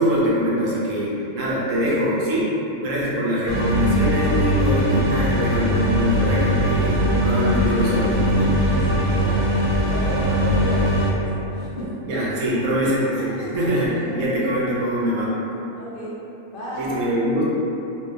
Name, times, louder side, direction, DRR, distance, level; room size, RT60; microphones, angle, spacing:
voice 1, 0.0-2.5 2.8-8.7 12.0-15.3 16.7-17.4, equal, 80° right, -6 dB, 1.0 m, -23 dB
sound 1, 3.5-11.1, equal, 60° right, 0.8 m, -20 dB
voice 2, 8.5-11.9 13.0-13.1 14.2-14.4 15.8-16.2 16.5-17.0, equal, 55° left, -9 dB, 0.7 m, -33 dB
3.2 x 2.8 x 2.3 m, 3.0 s
omnidirectional pair, 1.3 m